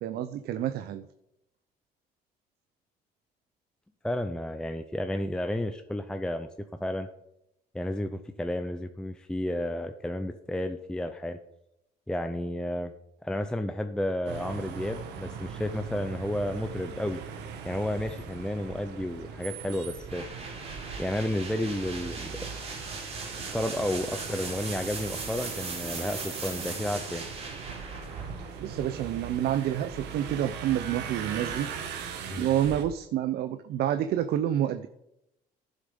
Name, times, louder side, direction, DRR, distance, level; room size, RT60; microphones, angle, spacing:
voice 1, 0.0-1.1 28.6-31.7 32.4-34.9, right 11 dB, 70° right, 10 dB, 0.7 m, -28 dB
voice 2, 4.0-6.5 6.8-7.1 7.7-11.4 12.1-12.9 13.2-17.2 17.6-20.2 21.0-22.4 23.5-27.3 32.3-32.5, left 1 dB, 5° left, 7 dB, 0.6 m, -32 dB
sound 1, 14.2-32.8, right 6 dB, 85° right, 1.6 m, -40 dB
sound 2, 20.1-29.8, right 3 dB, 35° right, 3.5 m, -39 dB
11.5 x 7.5 x 5.3 m, 0.82 s
cardioid pair, 110°, 17 cm